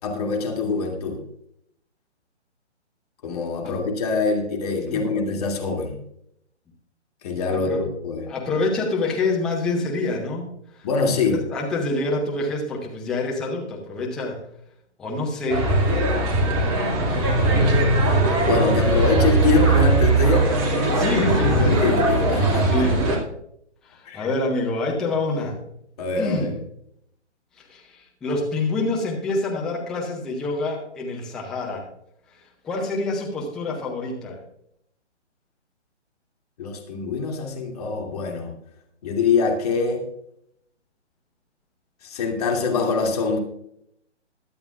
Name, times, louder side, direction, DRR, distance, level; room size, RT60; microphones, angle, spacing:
voice 1, 0.0-1.2 3.2-6.0 7.2-8.3 10.8-11.4 18.4-20.5 21.4-22.9 24.0-24.3 26.0-26.6 36.6-38.5 39.0-40.0 42.0-43.4, left 4 dB, 35° left, 2 dB, 2.7 m, -24 dB
voice 2, 4.9-5.5 7.5-7.9 8.3-10.5 10.7-10.9 11.3-14.4 15.0-15.7 20.8-22.1 22.4-23.2 23.8-25.6 26.2-26.5 27.6-31.8 32.3-34.4, left 2 dB, ahead, -2 dB, 0.6 m, -27 dB
sound 1, 15.5-23.2, right 2 dB, 20° right, 2.4 m, -19 dB
21.5 x 8.6 x 2.4 m, 0.73 s
figure-of-eight pair, 140°, 35 cm